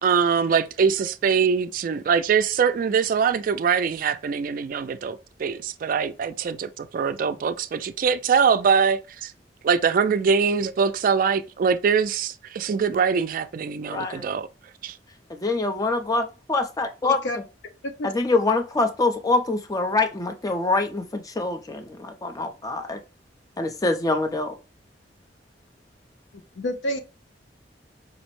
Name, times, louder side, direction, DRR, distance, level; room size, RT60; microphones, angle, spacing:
voice 1, 0.0-9.3 9.6-14.5 14.8-15.0, right 6 dB, 50° right, 0.3 m, -23 dB
voice 2, 13.8-14.3 15.3-17.2 18.0-23.0 23.6-24.5, left 3 dB, 20° left, 0.5 m, -25 dB
voice 3, 17.0-17.4 17.8-18.1 26.6-27.0, left 1 dB, 85° left, 0.7 m, -28 dB
4.9 x 2.1 x 3.0 m
head